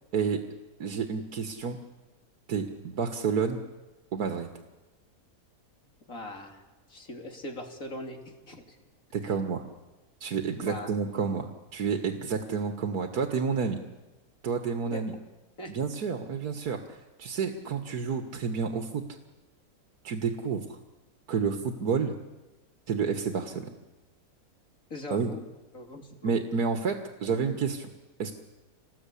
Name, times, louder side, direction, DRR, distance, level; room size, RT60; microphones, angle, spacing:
voice 1, 0.8-1.8 2.5-3.6 4.1-4.5 9.1-9.6 10.2-13.8 14.4-15.1 15.7-19.0 20.0-20.7 21.3-22.1 22.9-23.7 25.1-25.3 26.2-27.9 28.2-28.3, right 5 dB, 85° right, 6 dB, 2.0 m, -30 dB
voice 2, 6.1-6.6 6.9-8.8 9.2-9.4 10.6-10.9 14.9-15.0 15.6-15.7 24.9-25.4 25.7-26.3, left 1 dB, 60° left, 2 dB, 3.6 m, -40 dB
27.0 x 19.5 x 8.4 m, 1.1 s
omnidirectional pair, 1.6 m